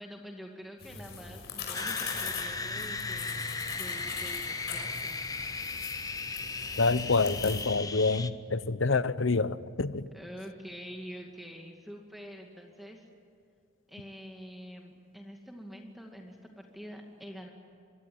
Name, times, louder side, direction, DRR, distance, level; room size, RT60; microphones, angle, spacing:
voice 1, 0.0-3.4 3.8-5.4 10.1-13.0 13.9-17.5, equal, ahead, 1 dB, 2.3 m, -46 dB
sound 1, 0.8-7.6, left 5 dB, 50° left, 6.5 m, -41 dB
sound 2, 1.7-8.3, left 4 dB, 15° left, 0.8 m, -36 dB
voice 2, 6.8-10.1, left 3 dB, 65° left, 15 dB, 0.8 m, -27 dB
24.5 x 24.0 x 8.8 m, 2.4 s
head